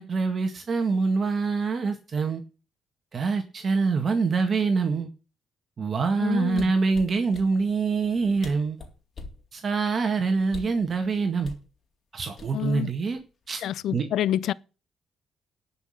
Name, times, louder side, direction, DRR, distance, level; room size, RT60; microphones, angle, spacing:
voice 1, 0.0-2.4 3.1-5.1 5.8-8.8 9.5-11.5 12.1-13.2 13.5-13.6 13.9-14.0, right 4 dB, 45° right, 1.8 m, -25 dB
voice 2, 6.2-6.7 12.5-12.9 13.6-14.5, left 12 dB, 75° left, 0.5 m, -28 dB
sound 1, 6.5-7.5 8.1-8.2 8.4-9.4 10.5-10.8 11.4-11.7 12.4-12.8 13.2-13.5, left 3 dB, 45° left, 3.5 m, -42 dB
12.0 x 6.0 x 8.6 m
cardioid pair, 90°, 0 cm